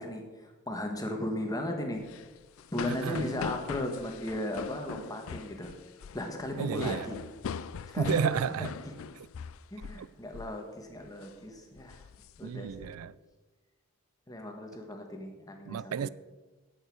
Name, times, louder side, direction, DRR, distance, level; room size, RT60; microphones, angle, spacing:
voice 1, 0.0-2.0 2.7-5.7 6.1-7.2 7.9-8.2 8.6-8.7 9.7-12.0 12.4-12.9 14.3-16.1, left 1 dB, 15° left, 1.4 m, -36 dB
sound 1, 2.0-10.1 10.3-10.6 11.0-11.3 11.8-12.9, left 6 dB, 60° left, 0.4 m, -41 dB
voice 2, 2.9-3.3 6.6-7.1 8.0-8.7 10.0-10.1 12.4-13.1 15.7-16.1, right 7 dB, 75° right, 0.4 m, -32 dB
11.0 x 8.1 x 4.8 m
head